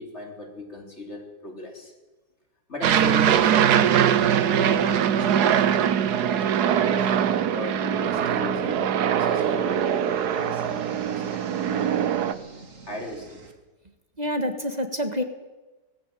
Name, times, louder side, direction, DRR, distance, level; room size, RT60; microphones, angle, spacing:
voice 1, 0.0-1.9 2.7-8.9 9.2-13.5, left 1 dB, 35° left, 2 dB, 3.7 m, -38 dB
Aircraft, 2.8-12.3, right 9 dB, 65° right, 1.4 m, -22 dB
sound 1, 8.0-13.5, right 4 dB, 45° right, 2.6 m, -46 dB
voice 2, 14.2-15.2, equal, 25° right, 6 dB, 1.8 m, -27 dB
19.0 x 16.0 x 9.1 m, 1.2 s
omnidirectional pair, 2.0 m